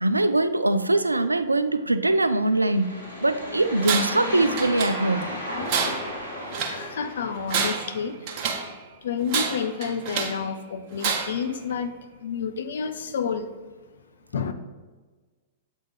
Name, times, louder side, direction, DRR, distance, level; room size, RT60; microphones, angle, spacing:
voice 1, 0.0-5.3, right 2 dB, 90° right, 11 dB, 0.3 m, -22 dB
sound 1, 2.4-7.8, equal, 90° left, 1.4 m, -34 dB
Tools, 3.8-4.3 4.6-5.3 5.7-6.8 7.4-8.7 9.3-10.4 11.0-11.5, right 6 dB, 45° right, 0.9 m, -28 dB
voice 2, 6.7-8.2 9.0-13.5 14.3-14.5, left 6 dB, 65° left, 9 dB, 0.6 m, -29 dB
7.7 x 4.2 x 3.5 m, 1.3 s
figure-of-eight pair, 105°, 0 cm